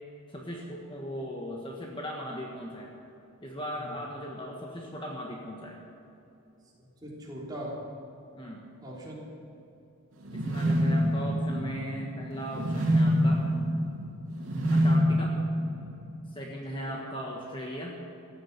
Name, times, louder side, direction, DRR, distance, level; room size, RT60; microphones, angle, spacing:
voice 1, 0.3-2.9 3.4-5.8 8.4-8.7 10.3-13.5 14.7-15.4 16.3-18.0, equal, 25° left, -1 dB, 1.5 m, -38 dB
voice 2, 6.8-7.9 8.8-9.2 14.4-14.8 16.7-17.0, equal, 20° right, -5 dB, 3.7 m, -41 dB
sound 1, 10.2-16.3, equal, 70° right, 3.1 m, -26 dB
15.5 x 9.0 x 8.8 m, 2.8 s
head